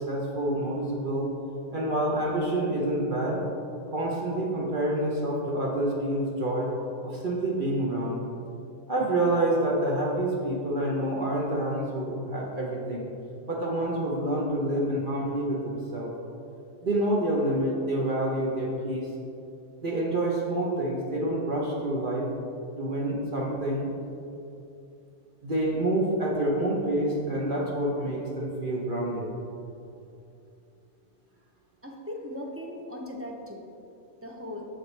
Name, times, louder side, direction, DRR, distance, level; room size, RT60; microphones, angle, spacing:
voice 1, 0.1-1.3 1.7-3.4 3.9-6.7 7.0-8.2 8.9-13.1 13.5-16.1 16.8-19.1 19.8-22.3 22.8-23.9 25.4-29.3, right 1 dB, 45° right, -3 dB, 1.0 m, -27 dB
voice 2, 31.8-33.7 34.2-34.7, left 1 dB, 20° right, -1 dB, 0.4 m, -38 dB
7.6 x 6.2 x 3.2 m, 2.6 s
omnidirectional pair, 1.3 m